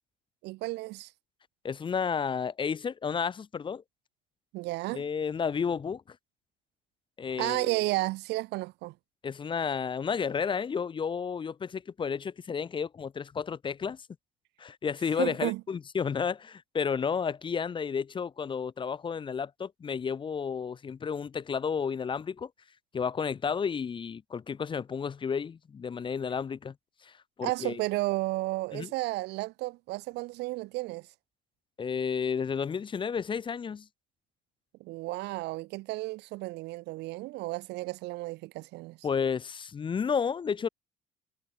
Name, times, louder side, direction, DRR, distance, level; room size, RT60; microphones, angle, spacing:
voice 1, 0.4-1.1 4.5-5.0 7.4-8.9 15.2-15.6 27.4-31.1 34.8-39.0, right 20 dB, 85° right, 0.6 m, -32 dB
voice 2, 1.6-3.8 4.9-6.2 7.2-7.8 9.2-14.0 14.6-22.5 22.9-26.7 27.0-27.8 28.7-28.9 31.8-33.9 39.0-40.7, left 6 dB, 30° left, 0.7 m, -32 dB
cardioid pair, 110°, 17 cm